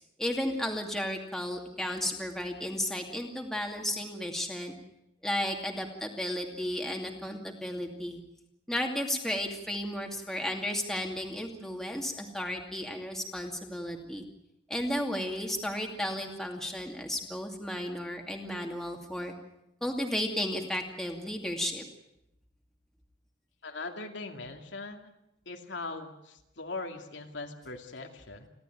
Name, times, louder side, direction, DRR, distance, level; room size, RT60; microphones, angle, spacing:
voice 1, 0.2-4.7 5.2-8.2 8.7-14.3 14.7-19.3 19.8-21.8, left 1 dB, ahead, 2 dB, 2.4 m, -33 dB
voice 2, 23.6-25.1 25.5-28.5, left 3 dB, 75° left, 3 dB, 2.4 m, -40 dB
29.5 x 12.5 x 9.2 m, 0.87 s
head